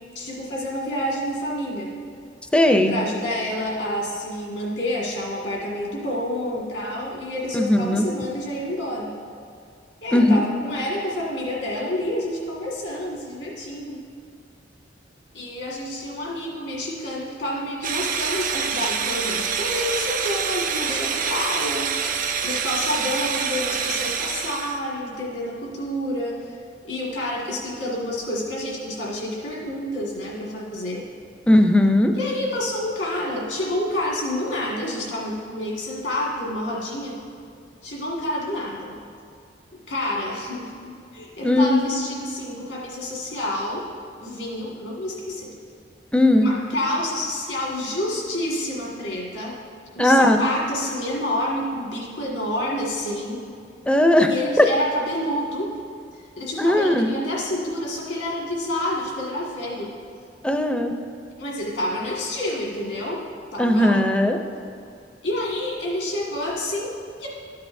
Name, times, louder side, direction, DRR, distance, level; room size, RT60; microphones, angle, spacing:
voice 1, 0.2-1.9 2.9-9.1 10.0-14.0 15.3-21.9 22.4-26.5 26.8-31.1 32.2-37.2 37.8-39.0 39.9-43.9 44.2-45.5 46.4-49.6 49.9-53.5 54.3-55.8 56.4-59.9 61.4-63.3 63.5-64.0 65.2-67.3, left 1 dB, 75° left, -4 dB, 1.8 m, -28 dB
voice 2, 2.5-3.0 7.5-8.0 10.1-10.4 31.5-32.1 41.4-41.8 46.1-46.5 50.0-50.5 53.9-54.7 56.6-57.1 60.4-60.9 63.6-64.4, left 1 dB, 5° left, 5 dB, 0.5 m, -17 dB
sound 1, 17.8-24.8, right 6 dB, 45° right, 0.5 m, -26 dB
13.0 x 8.6 x 2.6 m, 2.3 s
head